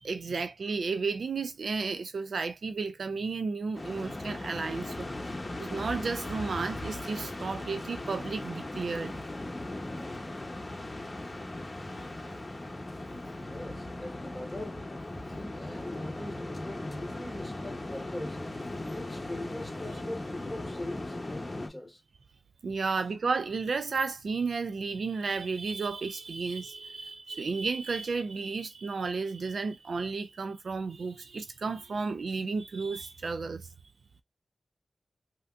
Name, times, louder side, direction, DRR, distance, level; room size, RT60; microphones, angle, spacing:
voice 1, 0.0-5.1 5.6-9.1 22.6-33.7, right 4 dB, 75° right, 0.3 m, -33 dB
sound 1, 3.7-21.7, left 2 dB, 25° left, 0.8 m, -38 dB
voice 2, 13.3-14.8 15.3-18.4 18.8-22.0, left 1 dB, 5° left, 1.4 m, -41 dB
3.3 x 2.8 x 2.4 m
wide cardioid pair, 110°, 0 cm